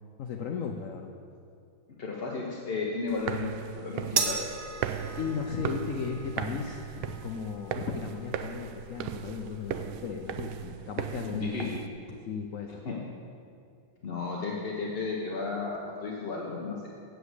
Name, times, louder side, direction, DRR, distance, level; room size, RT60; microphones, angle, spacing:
voice 1, 0.2-1.1 5.2-11.8 12.1-12.8, left 6 dB, 80° left, 3 dB, 0.7 m, -36 dB
voice 2, 2.0-3.5 3.7-4.4 11.3-11.8 12.8-13.0 14.0-16.9, left 4 dB, 40° left, -3 dB, 0.9 m, -33 dB
sound 1, 3.1-11.9, right 9 dB, 90° right, 1.4 m, -37 dB
sound 2, 4.2-10.7, right 5 dB, 65° right, 1.6 m, -38 dB
8.0 x 7.9 x 8.0 m, 2.4 s
omnidirectional pair, 2.2 m